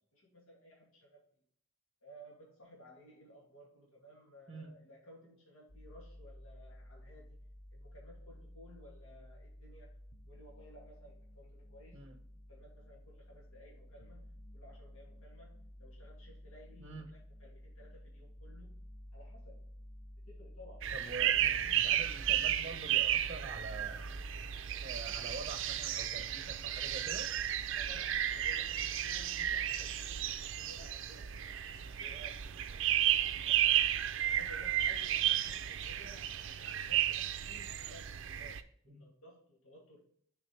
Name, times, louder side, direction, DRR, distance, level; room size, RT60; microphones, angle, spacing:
voice 1, 0.1-1.3 2.0-7.4 7.7-9.9 10.3-12.0 12.5-18.8 19.1-19.6 20.3-20.9 21.2-21.9 27.7-31.4 31.7-33.8 34.3-40.0, equal, 85° left, -4 dB, 2.4 m, -57 dB
sound 1, 5.7-24.5, equal, 35° left, 0.7 m, -53 dB
voice 2, 16.8-17.1 20.9-24.1 24.8-27.3 29.4-29.5 38.9-39.0, right 3 dB, 30° right, 5 dB, 0.8 m, -46 dB
sound 2, 20.8-38.6, right 11 dB, 55° right, 0.4 m, -33 dB
7.2 x 5.0 x 3.3 m, 0.62 s
head